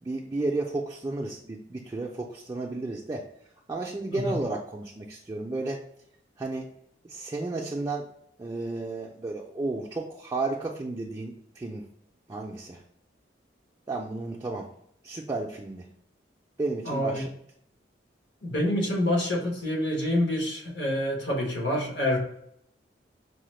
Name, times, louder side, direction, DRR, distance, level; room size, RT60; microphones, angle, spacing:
voice 1, 0.0-3.2 3.7-5.8 6.4-6.7 7.0-8.1 8.4-11.9 12.3-12.8 13.9-14.7 15.0-15.9 16.6-17.3, right 2 dB, 20° right, -1 dB, 0.3 m, -32 dB
voice 2, 16.8-17.2 18.4-22.2, left 1 dB, 80° left, -1 dB, 1.1 m, -27 dB
4.8 x 2.0 x 3.1 m, 0.71 s
head